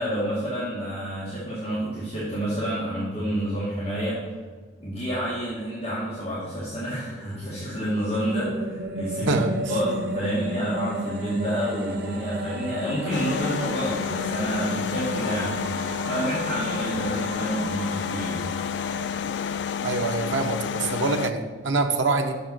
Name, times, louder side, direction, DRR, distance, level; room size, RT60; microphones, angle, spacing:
voice 1, 0.0-4.2 4.8-9.4 9.6-15.6 16.0-18.4, equal, 35° left, -9 dB, 2.0 m, -29 dB
sound 1, 7.0-20.3, right 1 dB, 55° right, 1.0 m, -34 dB
voice 2, 9.2-9.5 19.8-22.4, right 3 dB, 90° right, 5 dB, 0.8 m, -25 dB
sound 2, 13.1-21.3, left 7 dB, 70° left, 0.3 m, -30 dB
6.8 x 6.4 x 6.1 m, 1.4 s
head